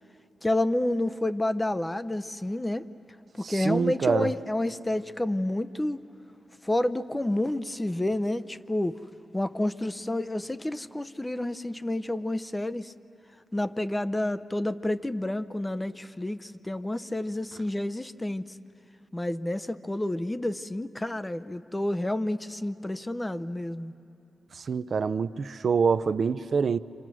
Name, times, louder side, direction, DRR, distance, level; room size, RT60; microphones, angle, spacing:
voice 1, 0.4-2.8 3.4-6.0 6.6-9.0 9.3-12.9 13.5-18.4 19.1-23.9, left 1 dB, 15° left, 0.5 m, -29 dB
voice 2, 3.4-4.3 24.5-26.8, right 5 dB, 55° right, 0.5 m, -26 dB
28.5 x 26.5 x 6.2 m
wide cardioid pair, 120°, 0 cm